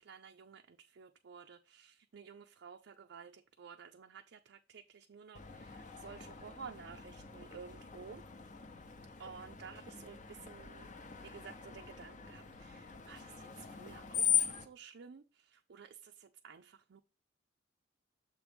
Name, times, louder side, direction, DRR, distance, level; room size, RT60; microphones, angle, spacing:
voice 1, 0.0-8.2 9.2-17.0, right 6 dB, 60° right, 0.4 m, -53 dB
Screech, 5.3-14.7, left 8 dB, 40° left, 0.7 m, -40 dB
7.1 x 3.1 x 5.0 m
head